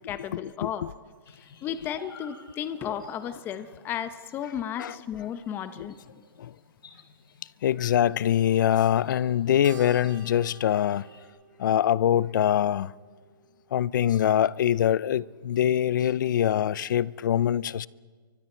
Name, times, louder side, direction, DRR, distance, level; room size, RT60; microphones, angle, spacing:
voice 1, 0.1-0.9 1.6-5.9, left 9 dB, 15° left, 1.0 m, -34 dB
sound 1, 1.3-11.3, left 5 dB, 80° left, 3.6 m, -53 dB
voice 2, 7.6-11.1 11.6-12.9 13.7-17.9, left 10 dB, 60° left, 0.6 m, -24 dB
Keyboard (musical), 9.6-14.2, right 8 dB, 55° right, 2.1 m, -51 dB
29.0 x 24.0 x 4.5 m
hypercardioid pair, 155°, 12 cm